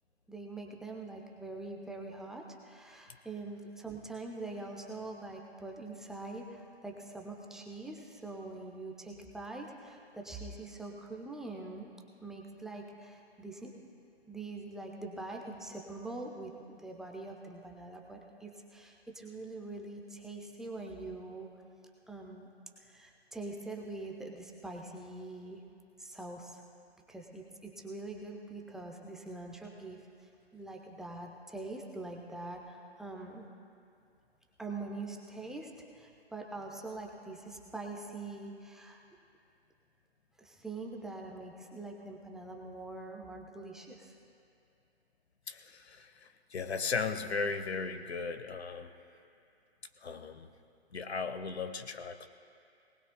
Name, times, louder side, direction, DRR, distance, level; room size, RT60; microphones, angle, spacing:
voice 1, 0.3-11.9 12.2-13.7 14.3-21.5 22.1-22.5 22.8-25.6 26.0-26.6 27.1-33.5 34.6-39.0 40.4-44.1, right 2 dB, ahead, 0 dB, 0.4 m, -44 dB
voice 2, 45.5-48.9 50.0-50.5 50.9-52.3, left 5 dB, 80° left, 10 dB, 1.0 m, -36 dB
22.0 x 19.0 x 2.2 m, 2.5 s
figure-of-eight pair, 125°, 32 cm